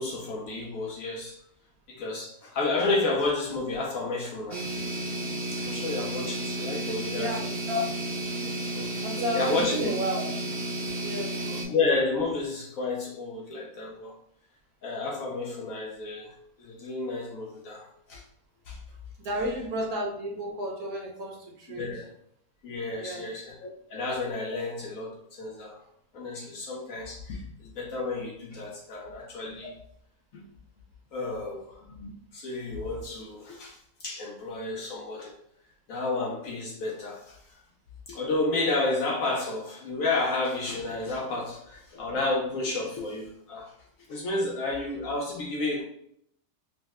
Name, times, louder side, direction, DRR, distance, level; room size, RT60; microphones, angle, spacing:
voice 1, 0.0-1.4 1.9-4.7 5.5-7.4 8.5-9.1 9.3-9.9 11.5-14.1 14.8-18.2 18.7-18.8 21.7-22.1 22.6-25.8 26.1-29.7 30.3-30.5 31.1-35.4 35.9-37.6 38.1-43.8 44.1-45.8, left 3 dB, 70° left, 0.8 m, -31 dB
sound 1, 4.5-11.7, right 1 dB, 50° right, 0.9 m, -32 dB
voice 2, 9.0-10.2 11.0-11.5 19.2-21.9 22.9-23.3, equal, 65° right, 1.2 m, -32 dB
5.2 x 2.1 x 2.3 m
omnidirectional pair, 1.8 m